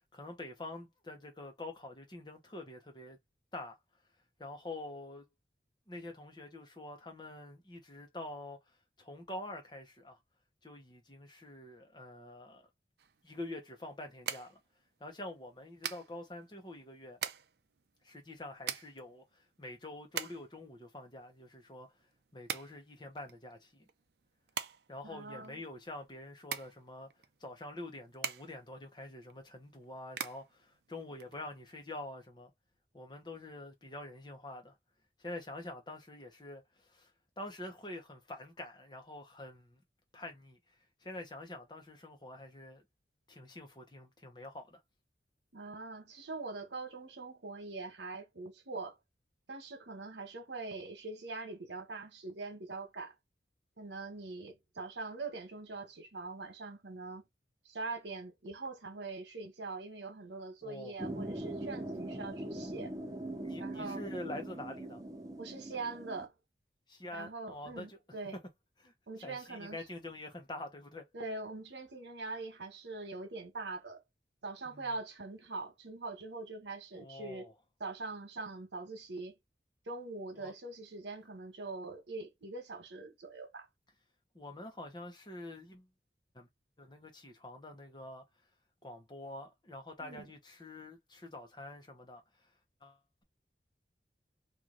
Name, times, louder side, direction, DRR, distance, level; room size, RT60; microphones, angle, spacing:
voice 1, 0.1-3.2 3.5-3.8 4.4-5.3 5.9-10.2 10.6-12.7 13.2-14.6 15.0-17.2 18.0-21.9 22.3-23.8 24.9-27.1 27.4-32.5 32.9-34.8 35.2-39.8 40.1-40.6 41.0-42.8 43.3-44.8 60.6-60.9 63.4-65.0 66.9-68.0 68.2-68.4 68.8-71.0 74.7-74.9 76.9-77.5 80.3-80.5 84.3-85.9 86.3-86.5 86.8-88.2 88.8-92.5 92.8-93.2, left 2 dB, 25° left, 0.9 m, -46 dB
sound 1, 13.0-31.8, right 9 dB, 65° right, 0.5 m, -45 dB
voice 2, 25.0-25.6 45.5-49.0 49.5-53.1 53.8-57.2 57.6-62.9 63.6-64.0 65.4-66.3 67.1-68.4 69.1-69.8 71.1-74.0 74.4-77.5 77.8-79.3 79.9-83.7 90.0-90.3, right 3 dB, 85° right, 1.2 m, -43 dB
sound 2, 61.0-66.3, right 1 dB, 20° right, 0.6 m, -41 dB
3.1 x 2.6 x 3.8 m
head